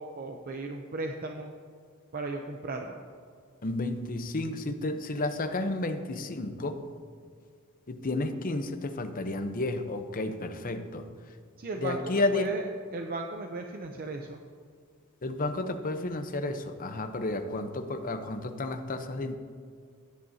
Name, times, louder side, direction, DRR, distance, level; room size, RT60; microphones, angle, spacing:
voice 1, 0.0-1.5 2.1-3.0 11.6-14.4, right 2 dB, 45° right, 3 dB, 0.6 m, -36 dB
voice 2, 3.6-6.8 7.9-11.1 11.8-12.5 15.2-19.4, left 2 dB, 40° left, 7 dB, 0.8 m, -31 dB
16.0 x 10.5 x 2.8 m, 2.1 s
head